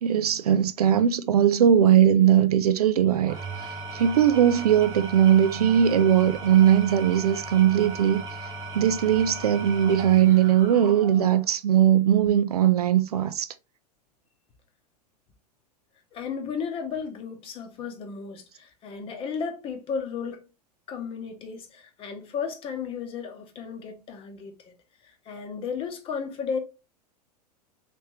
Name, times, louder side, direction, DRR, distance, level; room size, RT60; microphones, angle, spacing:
voice 1, 0.0-8.2 8.7-13.5, right 10 dB, 65° right, 0.4 m, -20 dB
Engine / Tools, 3.1-11.5, right 3 dB, 15° right, 1.1 m, -37 dB
voice 2, 16.1-20.5 20.9-24.7 25.0-26.6, left 6 dB, 25° left, 0.8 m, -34 dB
3.3 x 3.1 x 3.0 m
figure-of-eight pair, 95°, 21 cm